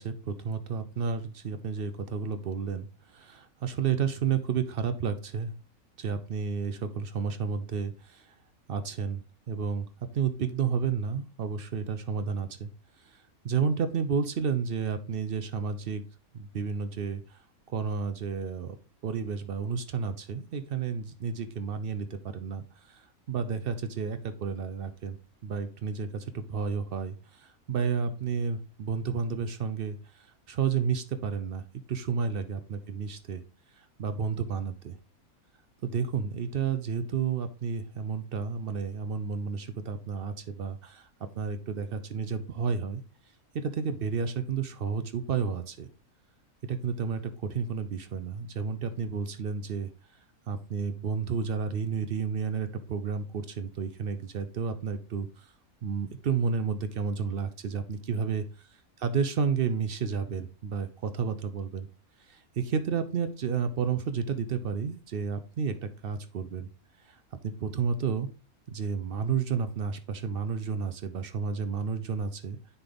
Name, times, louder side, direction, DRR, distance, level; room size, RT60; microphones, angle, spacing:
voice 1, 0.0-5.5 6.0-8.3 8.7-9.2 9.5-9.9 10.1-12.7 13.0-16.0 16.3-17.4 17.7-18.8 19.0-25.2 25.4-33.4 33.8-35.0 35.8-41.1 41.4-43.0 43.5-45.9 46.6-49.9 50.5-55.5 55.8-58.4 59.0-61.9 62.3-66.7 67.0-68.3 68.7-72.6, right 6 dB, 65° right, 10 dB, 0.5 m, -31 dB
9.6 x 3.5 x 3.8 m, 0.35 s
omnidirectional pair, 1.5 m